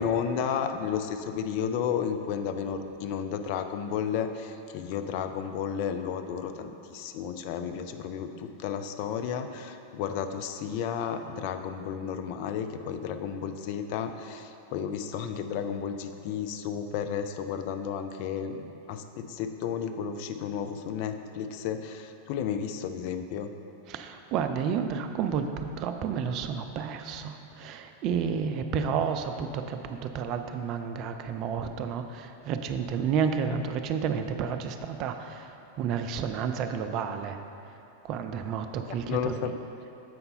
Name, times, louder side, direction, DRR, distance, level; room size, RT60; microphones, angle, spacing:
voice 1, 0.0-23.5 38.9-39.5, left 7 dB, 45° left, 7 dB, 0.4 m, -32 dB
voice 2, 23.9-35.5 35.8-37.4 38.0-39.3, right 7 dB, 40° right, 7 dB, 0.4 m, -31 dB
7.6 x 5.3 x 4.3 m, 2.8 s
figure-of-eight pair, 90°, 0 cm